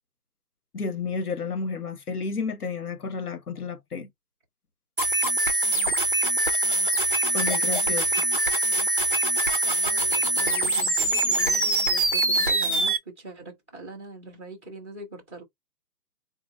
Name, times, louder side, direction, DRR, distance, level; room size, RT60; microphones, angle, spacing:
voice 1, 0.7-4.1 7.3-8.1, left 4 dB, 60° left, 1.3 m, -31 dB
sound 1, 5.0-13.0, right 2 dB, 35° right, 0.5 m, -23 dB
voice 2, 9.8-15.4, right 2 dB, 10° left, 0.8 m, -42 dB
4.0 x 3.0 x 4.2 m
figure-of-eight pair, 160°, 50 cm